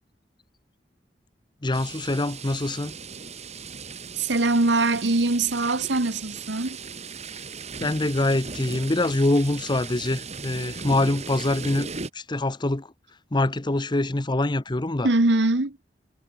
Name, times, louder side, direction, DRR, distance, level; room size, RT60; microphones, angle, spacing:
voice 1, 1.6-3.0 7.8-11.9 12.1-12.9 13.3-15.1, left 2 dB, 25° left, 0.9 m, -24 dB
sound 1, 1.7-12.1, right 4 dB, 40° right, 2.5 m, -38 dB
voice 2, 4.2-6.8 15.0-15.8, right 2 dB, 90° right, 1.5 m, -22 dB
head